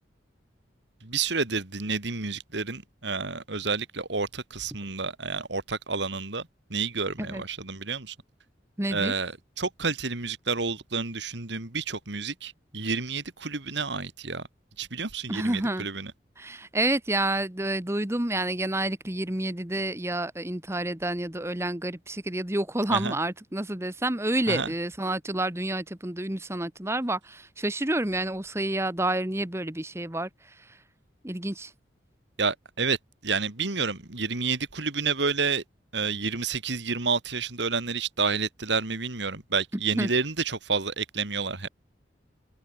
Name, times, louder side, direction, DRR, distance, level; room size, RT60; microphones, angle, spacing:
voice 1, 1.0-8.1 8.9-14.4 14.8-16.1 22.9-23.2 24.5-24.7 32.4-33.0 33.2-35.6 35.9-41.7, right 4 dB, 70° right, 2.3 m, -29 dB
voice 2, 8.8-9.2 15.3-15.9 16.4-30.8 31.2-31.7 39.9-40.1, right 1 dB, 15° right, 1.2 m, -29 dB
head